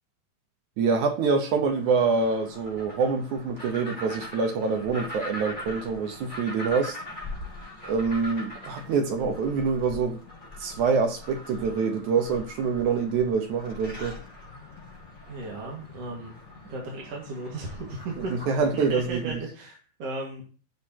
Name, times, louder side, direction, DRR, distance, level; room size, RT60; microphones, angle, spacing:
voice 1, 0.8-7.0 7.8-10.2 10.6-14.2 18.3-19.4, right 5 dB, 65° right, 2.2 m, -26 dB
sound 1, 1.7-19.4, left 1 dB, 10° left, 4.2 m, -42 dB
voice 2, 15.3-18.3 18.7-20.4, right 2 dB, 50° right, 2.6 m, -36 dB
14.5 x 6.8 x 2.9 m
omnidirectional pair, 4.3 m